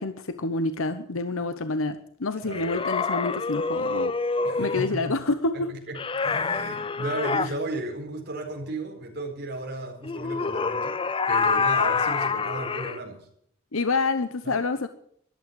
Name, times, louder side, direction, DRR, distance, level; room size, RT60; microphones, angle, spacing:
voice 1, 0.0-4.2 4.6-5.7 13.7-14.9, left 3 dB, 75° left, 11 dB, 0.9 m, -27 dB
voice 2, 2.4-2.8 4.4-5.2 5.5-6.0 6.2-10.9 11.3-13.3 14.4-14.6, right 2 dB, 50° right, 1 dB, 4.4 m, -34 dB
sound 1, 2.5-4.9 5.9-7.5 10.0-13.0, left 4 dB, 25° left, 0.5 m, -26 dB
13.5 x 12.0 x 8.9 m, 0.67 s
head